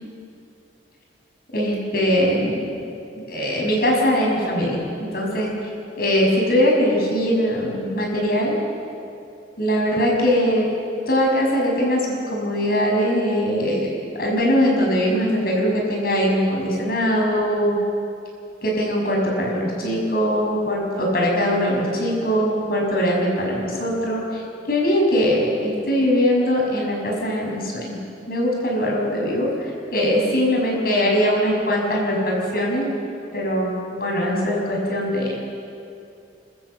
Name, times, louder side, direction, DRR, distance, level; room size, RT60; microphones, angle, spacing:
voice 1, 1.5-2.7 3.2-5.5 6.0-8.6 9.6-10.7 11.1-13.9 14.2-17.8 18.6-24.4 24.7-28.0 28.3-29.5 29.9-32.9 33.3-35.3, equal, 55° left, -2 dB, 6.3 m, -21 dB
28.5 x 13.5 x 8.1 m, 2.6 s
head